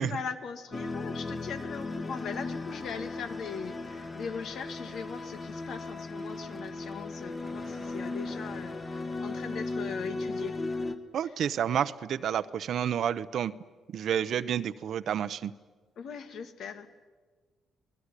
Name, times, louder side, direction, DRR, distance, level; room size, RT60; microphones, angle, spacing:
voice 1, 0.0-10.6 11.2-11.4 16.0-16.9, left 6 dB, 70° left, 9 dB, 2.1 m, -40 dB
sound 1, 0.7-11.0, left 3 dB, 30° left, 2.0 m, -36 dB
voice 2, 11.1-13.5 13.9-15.5, right 9 dB, 65° right, 13 dB, 0.8 m, -30 dB
26.0 x 19.0 x 9.9 m, 1.4 s
cardioid pair, 90°, 0 cm